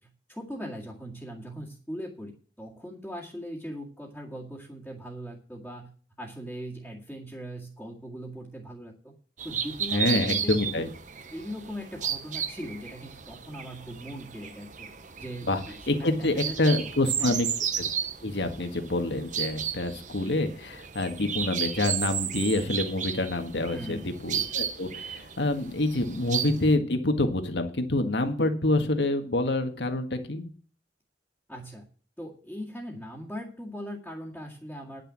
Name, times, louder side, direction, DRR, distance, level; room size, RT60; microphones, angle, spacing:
voice 1, 0.3-5.9 6.2-9.1 9.4-10.9 11.3-14.9 15.2-16.8 17.2-17.5 23.7-24.1 31.5-31.9 32.2-35.0, equal, 5° left, -5 dB, 2.0 m, -40 dB
sound 1, 9.4-26.7, right 8 dB, 45° right, 1.0 m, -34 dB
voice 2, 9.9-10.9 15.5-15.6 15.9-17.5 18.2-30.5, left 2 dB, 75° left, 7 dB, 1.7 m, -27 dB
10.0 x 6.8 x 7.5 m, 0.41 s
head